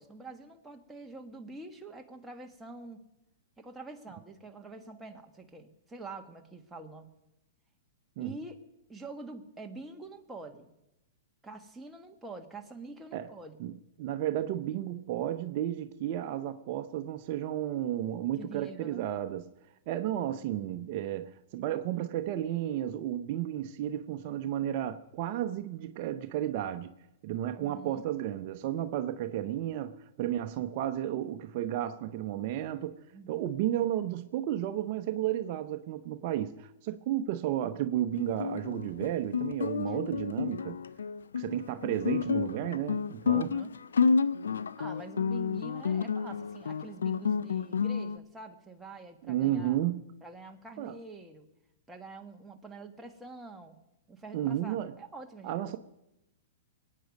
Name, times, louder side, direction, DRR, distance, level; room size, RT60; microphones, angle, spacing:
voice 1, 0.0-3.0 3.6-7.1 8.2-8.6 8.9-10.7 11.4-13.6 18.3-19.0 27.6-28.0 33.1-33.5 39.9-40.0 43.3-43.7 44.8-49.8 50.2-51.5 51.9-53.8 54.1-55.8, right 3 dB, 10° right, 1.5 m, -46 dB
voice 2, 13.6-19.5 19.9-26.9 27.2-33.0 33.3-40.8 41.4-43.6 49.2-50.0 50.8-50.9 54.3-54.9 55.4-55.8, right 12 dB, 45° right, 0.7 m, -33 dB
Guitar, 38.1-48.2, left 6 dB, 90° left, 0.5 m, -30 dB
22.5 x 9.2 x 5.3 m
hypercardioid pair, 130°, 0 cm